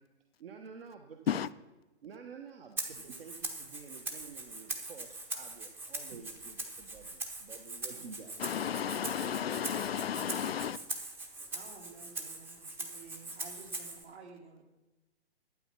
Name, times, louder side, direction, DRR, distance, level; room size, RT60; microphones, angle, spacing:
voice 1, 0.4-1.4 2.0-8.4, right 6 dB, 55° right, 1.2 m, -50 dB
Rattle (instrument), 2.8-14.0, right 2 dB, 5° right, 0.7 m, -41 dB
voice 2, 8.4-10.8, left 9 dB, 60° left, 0.5 m, -33 dB
voice 3, 11.2-14.6, right 5 dB, 70° right, 3.5 m, -53 dB
11.5 x 8.7 x 6.0 m
figure-of-eight pair, 130°, 34 cm